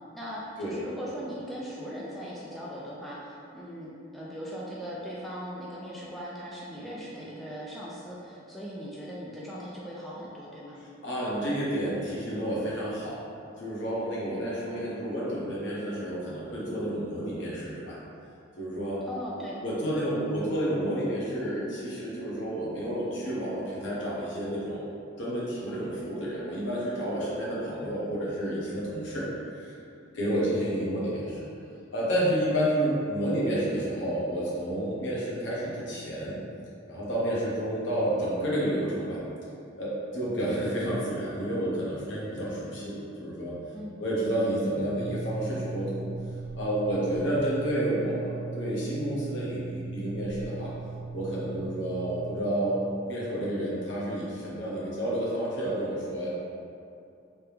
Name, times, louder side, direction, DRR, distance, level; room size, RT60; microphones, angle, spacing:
voice 1, 0.0-10.8 19.1-19.6 43.7-43.9, equal, ahead, -7 dB, 0.4 m, -39 dB
voice 2, 11.0-13.2 13.6-18.0 18.6-19.0 19.6-24.9 25.2-29.3 29.5-29.7 30.1-31.4 31.9-36.4 36.9-39.2 39.8-43.5 44.0-46.1 46.5-50.7 51.1-52.8 53.1-56.3, right 1 dB, 65° left, -6 dB, 0.9 m, -30 dB
sound 1, 44.9-52.4, right 3 dB, 80° right, 0.8 m, -38 dB
3.3 x 2.8 x 3.4 m, 2.5 s
head